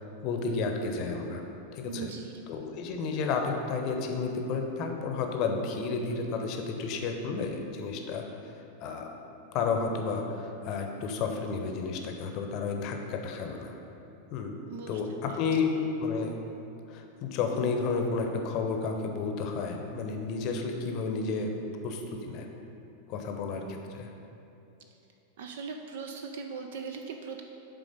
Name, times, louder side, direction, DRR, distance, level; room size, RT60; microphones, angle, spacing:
voice 1, 0.0-1.4 1.7-2.1 2.5-8.5 8.8-9.1 9.5-13.8 14.3-14.5 14.9-15.7 16.0-16.3 16.9-21.5 21.8-22.5 23.1-24.1, left 4 dB, 40° left, 4 dB, 0.7 m, -32 dB
voice 2, 1.8-2.3 14.7-15.0 15.3-15.4 25.4-27.4, right 5 dB, 55° right, 4 dB, 0.4 m, -39 dB
8.2 x 3.7 x 5.3 m, 2.9 s
figure-of-eight pair, 90°, 0 cm